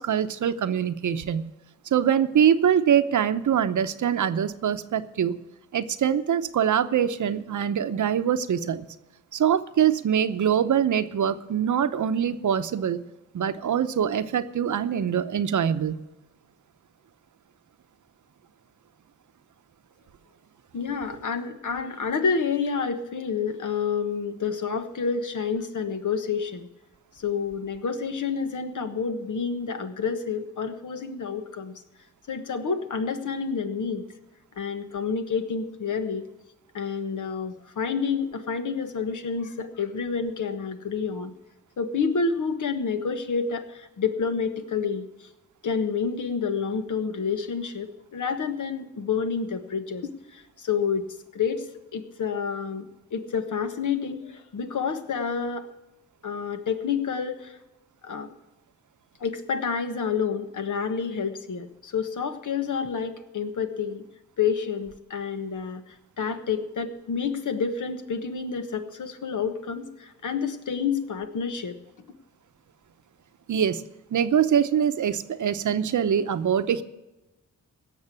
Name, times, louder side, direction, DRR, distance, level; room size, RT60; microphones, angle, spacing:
voice 1, 0.0-1.5 1.9-5.4 5.7-8.9 9.3-13.0 13.3-16.0 73.5-73.8 74.1-76.8, right 8 dB, 75° right, 12 dB, 0.8 m, -24 dB
voice 2, 20.7-26.7 27.2-31.7 32.3-34.0 34.6-36.2 36.7-41.3 41.8-45.0 45.6-51.0 51.3-51.7 51.9-55.7 56.2-57.6 58.0-58.3 59.2-64.0 64.4-71.7, left 5 dB, 75° left, 8 dB, 1.4 m, -29 dB
17.0 x 6.6 x 8.3 m, 0.99 s
cardioid pair, 70°, 31 cm